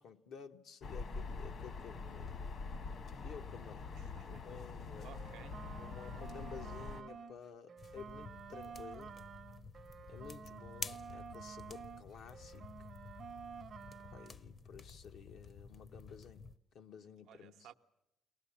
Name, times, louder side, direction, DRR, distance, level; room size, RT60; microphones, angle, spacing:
voice 1, 0.0-2.4 3.2-3.9 4.3-5.1 5.8-9.2 10.1-12.7 14.1-17.7, left 7 dB, 75° left, 1.0 m, -53 dB
sound 1, 0.8-7.0, left 4 dB, 60° left, 1.4 m, -45 dB
voice 2, 3.9-4.4 5.0-5.6 17.3-17.7, right 11 dB, 85° right, 0.7 m, -56 dB
sound 2, 5.1-7.4 7.7-12.1 12.3-14.3, right 6 dB, 55° right, 0.8 m, -51 dB
sound 3, 7.8-16.6, left 4 dB, 45° left, 0.8 m, -51 dB
23.0 x 19.0 x 8.5 m
cardioid pair, 90°, 0 cm